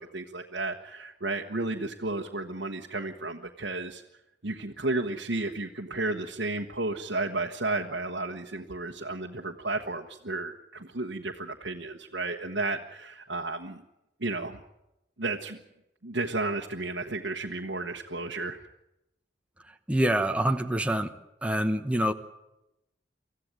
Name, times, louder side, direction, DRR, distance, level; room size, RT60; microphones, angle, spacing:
voice 1, 0.0-4.0 4.4-13.8 14.2-14.6 15.2-15.6 16.0-18.6, right 2 dB, 70° right, 1 dB, 1.3 m, -33 dB
voice 2, 19.9-21.1 21.4-22.1, right 1 dB, 5° right, 6 dB, 1.0 m, -25 dB
25.0 x 14.5 x 8.9 m, 0.91 s
head